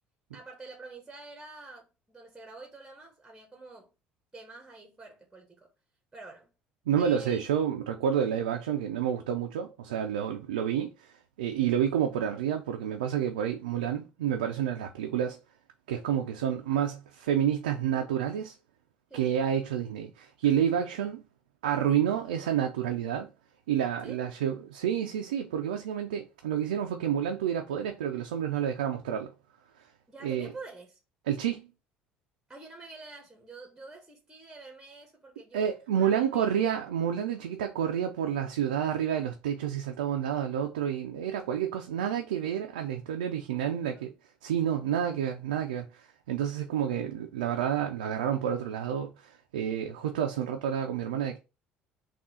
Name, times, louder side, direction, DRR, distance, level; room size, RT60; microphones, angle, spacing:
voice 1, 0.3-3.9 4.3-5.7 6.1-6.5 7.0-7.5 19.1-19.3 24.0-24.2 30.1-31.0 32.5-36.5 43.7-44.1, right 3 dB, 10° right, 1.1 m, -47 dB
voice 2, 6.9-15.4 15.9-18.5 19.1-21.2 21.6-23.3 23.7-29.3 30.2-30.5 31.3-31.7 35.5-44.1 44.4-51.4, right 9 dB, 90° right, 0.4 m, -29 dB
3.6 x 2.4 x 4.1 m
hypercardioid pair, 70°, 4 cm